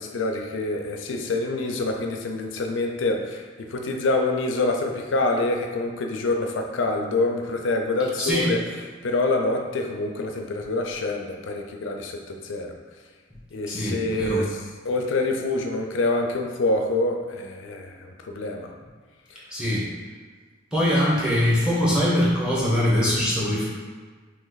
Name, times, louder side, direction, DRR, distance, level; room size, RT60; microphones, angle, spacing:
voice 1, 0.0-8.6 9.0-12.7 13.5-14.5 14.8-18.7, left 2 dB, 75° left, 3 dB, 0.5 m, -26 dB
voice 2, 8.2-8.6 13.7-14.4 19.5-19.9 20.7-23.6, equal, 5° right, -8 dB, 1.0 m, -22 dB
3.1 x 3.0 x 3.9 m, 1.5 s
head